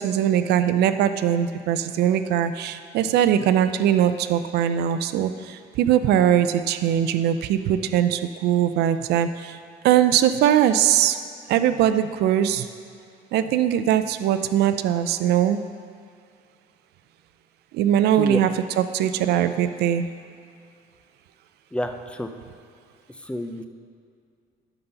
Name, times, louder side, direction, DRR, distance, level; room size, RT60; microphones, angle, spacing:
voice 1, 0.0-9.6 9.8-11.2 11.5-12.7 13.3-15.6 17.7-18.5 18.8-20.1, right 10 dB, 75° right, 11 dB, 0.5 m, -21 dB
voice 2, 21.7-22.3 23.1-23.7, left 1 dB, 5° left, 7 dB, 0.5 m, -29 dB
11.0 x 4.0 x 5.7 m, 2.3 s
cardioid pair, 110°, 17 cm